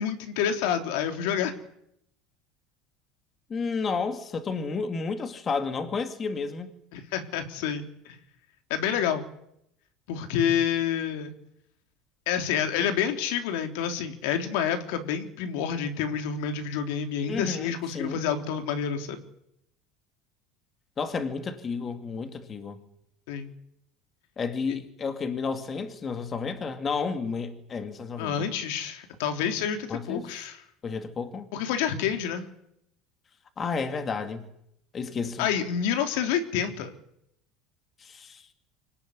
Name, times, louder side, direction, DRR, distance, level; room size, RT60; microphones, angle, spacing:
voice 1, 0.0-1.5 6.9-8.2 8.7-9.2 10.1-11.3 12.3-19.2 23.3-23.5 28.2-30.6 31.5-32.5 35.4-36.9, left 8 dB, 75° left, 3.4 m, -28 dB
voice 2, 3.5-6.7 17.3-18.2 21.0-22.8 24.4-28.5 29.9-30.3 30.8-31.5 33.6-34.5 34.9-35.5 38.0-38.4, left 5 dB, 25° left, 2.5 m, -31 dB
25.5 x 19.0 x 9.7 m
cardioid pair, 155°, 0 cm